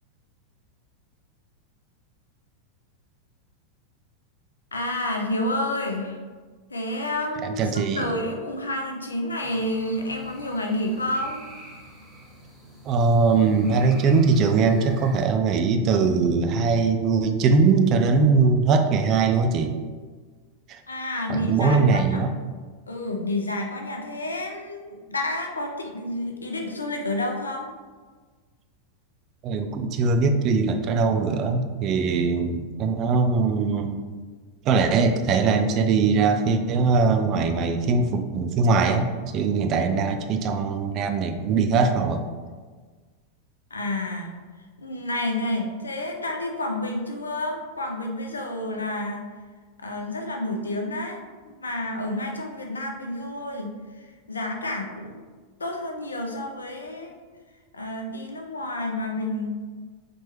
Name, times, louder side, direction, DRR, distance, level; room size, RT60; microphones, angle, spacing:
voice 1, 4.7-6.2 6.7-11.4 20.9-22.3 22.9-27.7 43.7-49.3 49.8-55.2 55.6-57.2 57.7-59.6, left 1 dB, 75° left, 2 dB, 0.5 m, -30 dB
voice 2, 7.4-8.0 12.8-19.8 20.7-20.8 21.3-22.3 29.4-34.0 34.6-42.2, right 4 dB, 35° right, 6 dB, 0.4 m, -21 dB
sound 1, 9.4-15.2, right 1 dB, 5° right, 1.3 m, -46 dB
4.3 x 3.0 x 3.1 m, 1.4 s
figure-of-eight pair, 90°, 0 cm